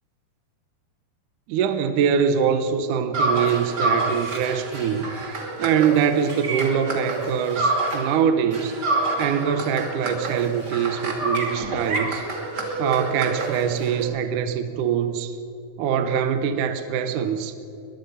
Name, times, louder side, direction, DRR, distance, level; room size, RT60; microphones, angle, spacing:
voice 1, 1.5-8.8 9.2-12.2 12.8-15.3 15.8-17.6, right 7 dB, 70° right, 9 dB, 2.1 m, -23 dB
sound 1, 3.1-8.2 8.5-14.0, right 2 dB, 30° right, 2.7 m, -27 dB
22.5 x 21.0 x 5.7 m, 2.9 s
omnidirectional pair, 4.5 m